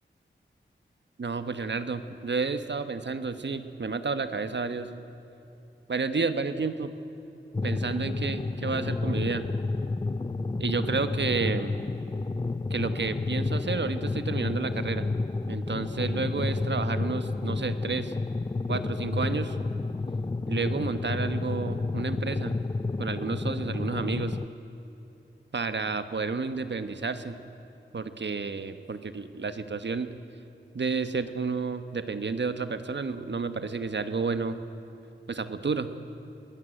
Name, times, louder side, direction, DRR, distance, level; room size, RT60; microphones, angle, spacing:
voice 1, 1.2-4.9 5.9-6.9 7.6-9.4 10.6-11.7 12.7-15.1 15.5-18.1 18.7-19.6 20.5-22.5 23.0-24.4 25.5-27.4 27.9-30.1 30.7-34.6 35.3-35.9, right 4 dB, 65° right, 10 dB, 1.2 m, -31 dB
sound 1, 7.5-24.5, left 3 dB, 20° left, 0.5 m, -30 dB
21.0 x 16.5 x 9.3 m, 3.0 s
wide cardioid pair, 80°, 20 cm